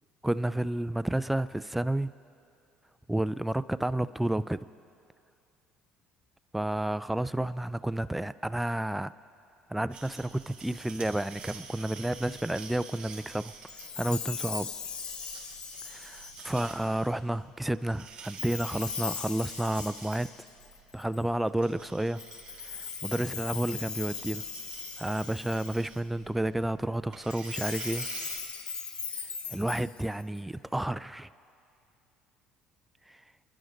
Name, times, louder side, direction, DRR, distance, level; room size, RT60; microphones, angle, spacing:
voice 1, 0.2-2.1 3.1-4.6 6.5-9.1 9.7-13.5 14.0-14.7 15.9-20.3 20.9-22.2 22.7-24.4 25.0-28.1 29.5-31.3 33.1-33.2, right 1 dB, 5° right, 14 dB, 0.3 m, -31 dB
sound 1, 9.9-28.4, right 5 dB, 40° right, 4.0 m, -48 dB
Chime, 13.7-17.0 18.4-21.2 22.2-26.0 27.2-30.4, left 6 dB, 40° left, 0.8 m, -39 dB
27.0 x 11.0 x 3.9 m, 2.5 s
cardioid pair, 110°, 2 cm